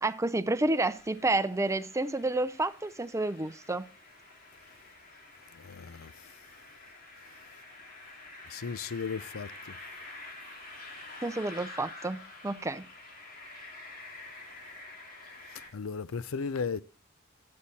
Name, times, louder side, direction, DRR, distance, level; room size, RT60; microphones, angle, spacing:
voice 1, 0.0-3.9 11.2-12.8, right 2 dB, 15° right, 0.5 m, -30 dB
sound 1, 0.7-15.7, left 2 dB, 45° left, 2.8 m, -48 dB
voice 2, 5.5-6.1 8.5-9.8 15.7-16.8, left 5 dB, 80° left, 0.6 m, -35 dB
11.5 x 8.6 x 4.1 m
head